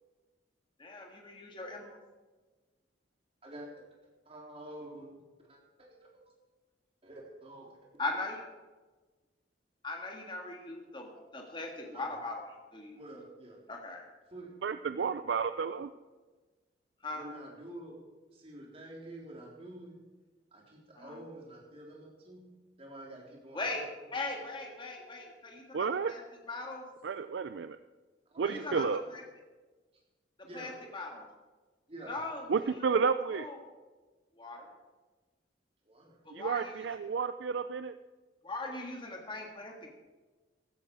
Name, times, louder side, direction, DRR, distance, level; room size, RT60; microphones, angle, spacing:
voice 1, 0.8-2.0 8.0-8.4 9.8-12.4 12.7-13.0 13.7-14.0 17.0-17.2 21.0-21.2 23.5-26.2 26.5-26.8 28.4-28.8 29.1-29.2 30.5-31.3 32.1-32.4 33.3-33.6 34.4-34.7 36.3-36.7 38.4-39.9, left 2 dB, 30° left, 1 dB, 1.7 m, -39 dB
voice 2, 4.3-5.1 5.5-6.2 7.0-7.8 11.9-12.1 12.9-13.6 14.3-14.5 17.1-18.0 18.3-20.0 20.5-22.5 22.8-24.1 28.3-29.0 30.4-30.7 31.9-32.2 35.9-36.2, right 1 dB, 35° right, -3 dB, 3.8 m, -48 dB
voice 3, 14.6-15.9 25.7-26.1 27.0-27.8 28.4-29.0 32.5-33.5 36.3-37.9, right 5 dB, 75° right, 11 dB, 0.4 m, -31 dB
15.5 x 13.0 x 4.8 m, 1.3 s
head